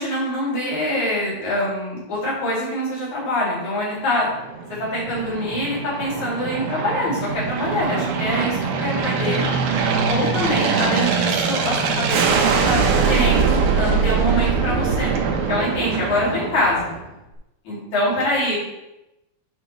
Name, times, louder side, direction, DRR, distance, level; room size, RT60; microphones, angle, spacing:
voice 1, 0.0-4.3 4.8-9.5 10.1-15.1 15.5-16.9 17.6-18.6, left 1 dB, 50° left, -7 dB, 3.4 m, -24 dB
Aircraft, 4.3-17.1, right 5 dB, 85° right, 1.8 m, -22 dB
11.0 x 5.2 x 3.0 m, 0.94 s
omnidirectional pair, 4.6 m